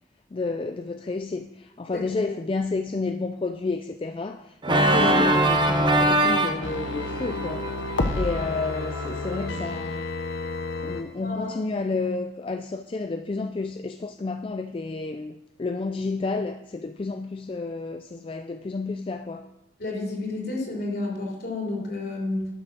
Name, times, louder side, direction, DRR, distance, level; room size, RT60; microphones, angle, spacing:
voice 1, 0.3-10.0 10.8-19.5, left 3 dB, 30° left, 0.3 m, -31 dB
Organ, 4.6-9.5, right 1 dB, 25° right, 0.8 m, -24 dB
sound 1, 6.6-11.0 11.4-11.5, left 3 dB, 80° left, 0.9 m, -31 dB
voice 2, 11.2-11.6 19.8-22.5, left 2 dB, 55° left, 3.5 m, -31 dB
11.5 x 6.3 x 6.2 m
head